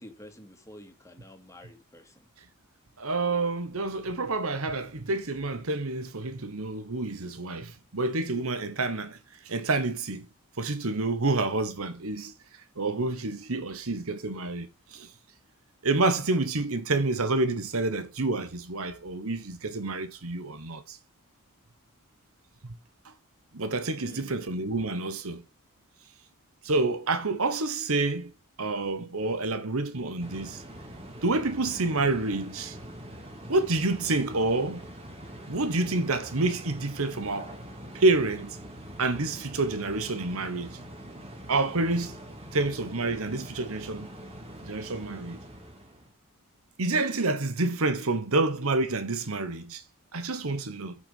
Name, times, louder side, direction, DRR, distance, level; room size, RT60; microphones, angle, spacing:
voice 1, 0.0-2.1 24.0-24.4, left 1 dB, 15° left, 2.3 m, -49 dB
voice 2, 3.0-9.2 9.4-10.3 10.6-12.3 12.8-15.1 15.8-21.0 22.6-22.8 23.0-23.1 23.5-25.4 26.6-28.3 28.6-30.6 31.2-32.8 33.5-34.9 35.5-37.5 37.9-38.6 39.0-40.8 41.5-42.2 42.5-44.1 44.7-45.4 46.8-49.8 50.1-51.0, right 2 dB, 70° right, 1.2 m, -28 dB
sound 1, 30.2-46.1, equal, 25° right, 2.6 m, -44 dB
9.7 x 6.2 x 5.5 m
head